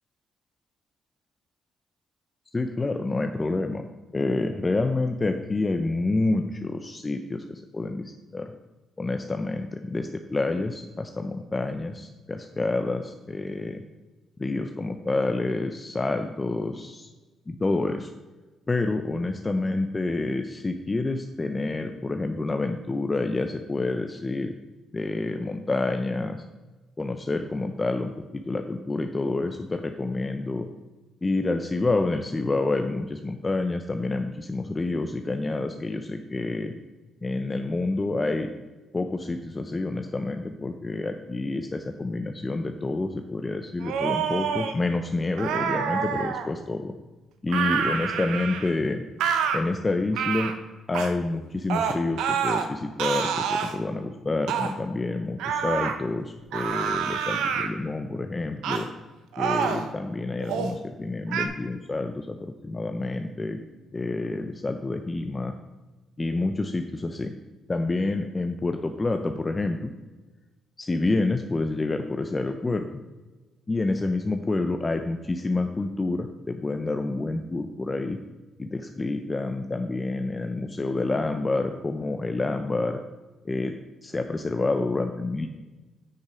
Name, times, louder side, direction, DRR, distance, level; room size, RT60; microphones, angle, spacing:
voice 1, 2.5-3.9 4.1-8.5 9.0-13.8 14.4-17.1 17.5-18.1 18.7-24.5 24.9-26.4 27.0-30.7 31.2-36.7 37.2-38.5 38.9-46.9 47.4-49.0 49.5-50.5 50.9-58.9 59.4-63.6 63.9-65.5 66.2-67.3 67.7-69.9 70.8-72.9 73.7-78.2 78.6-83.0 83.4-83.8 84.0-85.5, left 2 dB, 25° left, 6 dB, 0.6 m, -28 dB
sound 1, 43.8-44.7 45.4-46.5 47.5-48.7 49.2-49.6 50.1-50.5 50.9-51.1 51.7-52.7 53.0-53.7 54.5-54.7 55.4-56.0 56.5-57.7 58.6-58.9 59.3-59.9 60.4-60.7 61.3-61.5, right 7 dB, 90° right, 0.9 m, -27 dB
8.3 x 6.6 x 5.1 m, 1.2 s
cardioid pair, 90°, 0 cm